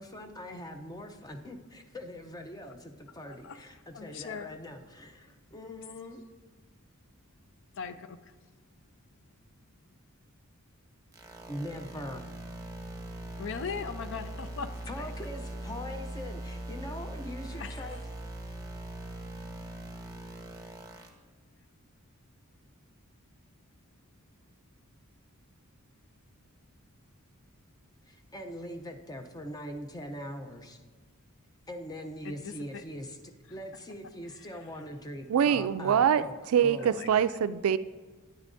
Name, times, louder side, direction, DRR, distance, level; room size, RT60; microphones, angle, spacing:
voice 1, 0.0-6.2 11.5-12.3 14.9-18.0 28.1-30.8 31.7-36.3 36.6-37.0, equal, 20° left, 6 dB, 0.6 m, -42 dB
voice 2, 3.2-3.7 3.9-4.5 7.7-8.3 13.4-14.7 15.0-15.1 17.6-18.0 32.2-32.8 36.8-37.1, left 6 dB, 60° left, 11 dB, 0.5 m, -39 dB
sound 1, 11.1-21.1, right 1 dB, 15° right, 1.0 m, -41 dB
voice 3, 35.3-37.8, right 8 dB, 85° right, 14 dB, 0.3 m, -24 dB
9.7 x 9.5 x 2.6 m, 1.4 s
head